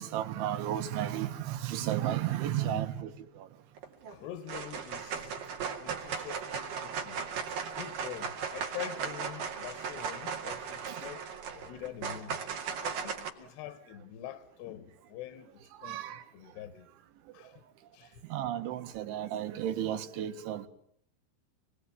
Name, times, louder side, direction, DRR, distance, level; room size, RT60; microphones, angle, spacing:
voice 1, 0.0-3.1 15.8-16.2 18.3-20.7, right 11 dB, 80° right, 3.9 m, -33 dB
voice 2, 2.5-2.9 4.1-7.2 7.7-12.4 12.8-15.5 15.8-16.0 16.3-16.9 17.3-17.6 17.9-18.2, left 11 dB, 70° left, 3.2 m, -45 dB
sound 1, 3.8-4.1 4.5-13.3, right 6 dB, 55° right, 3.4 m, -37 dB
27.0 x 21.5 x 9.5 m
omnidirectional pair, 5.5 m